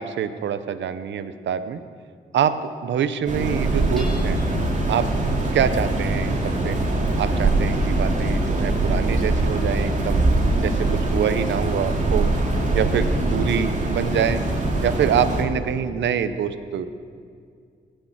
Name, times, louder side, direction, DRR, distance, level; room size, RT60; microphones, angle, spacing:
voice 1, 0.0-1.8 2.3-4.4 4.9-5.1 5.5-6.8 7.2-10.2 10.6-12.3 12.7-14.4 14.8-16.9, right 8 dB, 75° right, 12 dB, 0.8 m, -25 dB
sound 1, 3.3-15.4, right 2 dB, 40° right, 2.9 m, -22 dB
Hammer / Chink clink, 4.0-4.8, left 2 dB, ahead, 3.8 m, -42 dB
18.0 x 6.7 x 7.4 m, 2.2 s
supercardioid pair, 60°, 19 cm